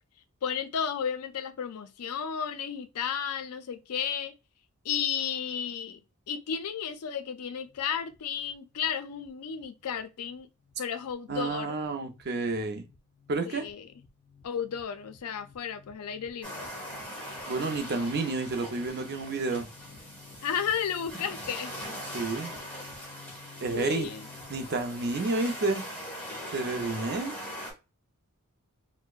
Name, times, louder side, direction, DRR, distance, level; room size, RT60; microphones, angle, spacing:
voice 1, 0.4-4.3 4.8-6.0 6.3-10.5 10.8-11.7 13.5-13.8 14.4-16.7 20.4-21.7 23.7-24.2, left 7 dB, 80° left, 0.4 m, -33 dB
sound 1, 7.7-24.7, left 5 dB, 25° left, 0.5 m, -54 dB
voice 2, 11.3-12.9 13.3-13.7 17.5-19.7 22.1-22.5 23.6-24.1 24.5-25.8 26.5-27.3, right 3 dB, 50° right, 0.6 m, -30 dB
sound 2, 16.4-27.7, equal, 10° left, 1.2 m, -41 dB
4.4 x 2.1 x 2.4 m
head